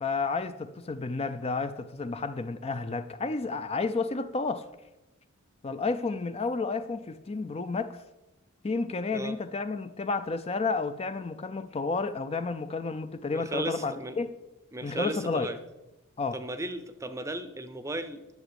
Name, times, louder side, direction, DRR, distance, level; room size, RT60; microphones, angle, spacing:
voice 1, 0.0-4.7 5.6-8.0 8.6-14.3 14.8-15.5 16.2-16.4, left 4 dB, 30° left, 0.4 m, -31 dB
voice 2, 13.3-14.2 14.7-15.6 16.3-18.3, right 1 dB, 15° right, 0.6 m, -35 dB
10.5 x 5.9 x 8.0 m
head